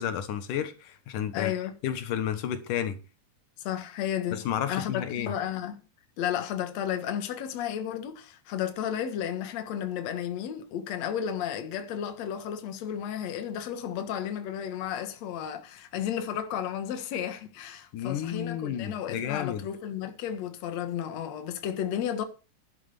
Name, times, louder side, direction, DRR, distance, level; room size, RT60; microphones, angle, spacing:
voice 1, 0.0-1.5 1.8-3.0 4.3-5.3 17.9-19.6, left 9 dB, 85° left, 2.9 m, -31 dB
voice 2, 1.3-1.7 3.6-4.4 4.7-5.8 6.2-22.2, left 9 dB, 60° left, 2.6 m, -33 dB
11.5 x 7.6 x 6.9 m
omnidirectional pair, 3.6 m